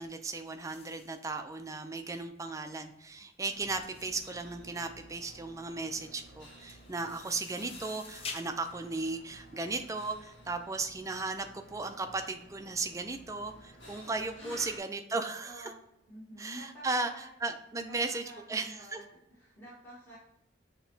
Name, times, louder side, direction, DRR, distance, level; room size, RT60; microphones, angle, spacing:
voice 1, 0.0-15.7 16.4-19.0, right 3 dB, 15° right, 7 dB, 0.4 m, -36 dB
sound 1, 0.7-10.3, left 4 dB, 35° left, 0.5 m, -49 dB
sound 2, 3.4-14.8, equal, 75° left, 1.6 m, -53 dB
voice 2, 14.3-14.8 15.4-15.8 16.1-17.3 17.9-18.0 18.2-19.0 19.3-20.2, right 1 dB, 10° left, -9 dB, 1.3 m, -49 dB
6.1 x 2.9 x 2.7 m, 0.83 s
head